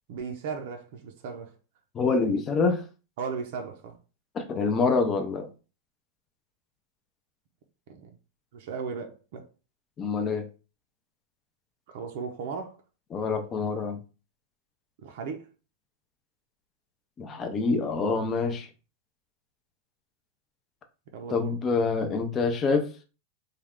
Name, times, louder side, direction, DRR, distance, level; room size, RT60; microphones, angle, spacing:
voice 1, 0.1-1.5 3.2-4.0 7.9-8.1 8.5-9.5 11.9-12.8 15.0-15.5 21.1-21.6, right 5 dB, 55° right, 0.6 m, -36 dB
voice 2, 1.9-2.8 4.3-5.5 10.0-10.5 13.1-14.0 17.2-18.7 21.3-23.0, left 4 dB, 20° left, 0.5 m, -26 dB
3.2 x 2.3 x 3.6 m
supercardioid pair, 160°, 0 cm